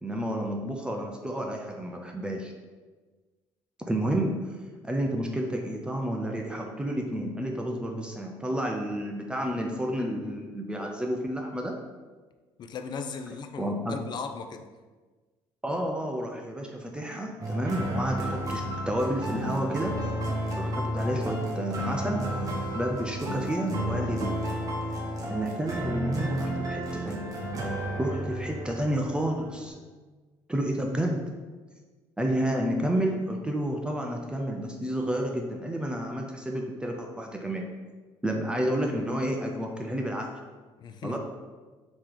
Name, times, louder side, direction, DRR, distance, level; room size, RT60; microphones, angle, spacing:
voice 1, 0.0-2.5 3.8-4.6 4.8-11.9 13.6-14.0 15.6-20.1 20.5-22.3 22.7-24.4 25.3-27.3 28.0-29.7 30.5-31.3 32.2-37.7 38.2-40.3 41.0-41.2, right 1 dB, 10° right, 1 dB, 0.5 m, -30 dB
voice 2, 12.6-14.7 40.8-41.2, left 5 dB, 50° left, 7 dB, 0.4 m, -37 dB
sound 1, 17.4-29.7, right 1 dB, 35° right, 1.1 m, -32 dB
3.6 x 3.0 x 4.9 m, 1.3 s
cardioid pair, 100°, 10 cm